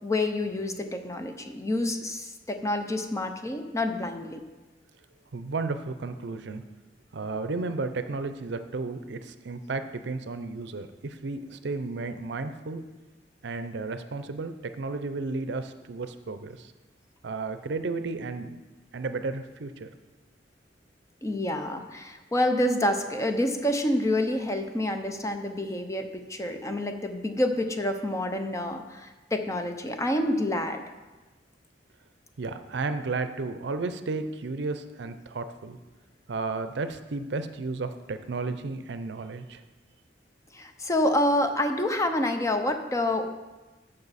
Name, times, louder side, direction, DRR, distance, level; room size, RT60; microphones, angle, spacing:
voice 1, 0.0-4.4 21.2-30.8 40.5-43.3, left 1 dB, 15° left, 6 dB, 0.6 m, -28 dB
voice 2, 5.3-6.6 7.1-12.8 13.4-16.7 17.2-18.6 18.9-19.9 32.4-35.8 36.3-39.6, right 3 dB, 65° right, 10 dB, 0.5 m, -33 dB
14.0 x 5.4 x 4.1 m, 1.2 s
head